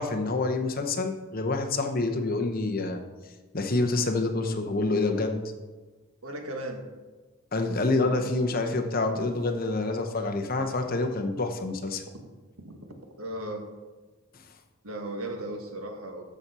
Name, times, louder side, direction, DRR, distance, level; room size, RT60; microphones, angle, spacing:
voice 1, 0.0-3.0 3.5-5.4 7.5-12.0, left 2 dB, 45° left, 5 dB, 0.9 m, -27 dB
voice 2, 6.2-6.9 7.7-8.2 12.6-12.8 13.2-13.7 14.8-16.2, right 1 dB, 90° right, 4 dB, 1.5 m, -36 dB
13.5 x 6.1 x 4.3 m, 1.3 s
head